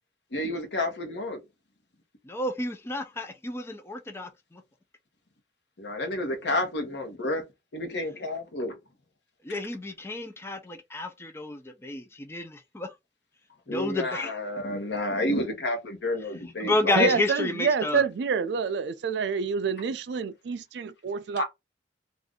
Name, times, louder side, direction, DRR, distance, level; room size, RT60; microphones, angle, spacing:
voice 1, 0.3-1.4 5.8-7.4 7.7-8.7 13.7-17.1 21.4-21.5, left 1 dB, 75° left, 1.0 m, -30 dB
voice 2, 2.3-4.6 9.4-12.9 13.7-14.3 16.6-18.0, left 2 dB, 15° left, 0.4 m, -30 dB
voice 3, 17.0-21.4, right 6 dB, 70° right, 0.4 m, -27 dB
2.6 x 2.4 x 3.5 m
head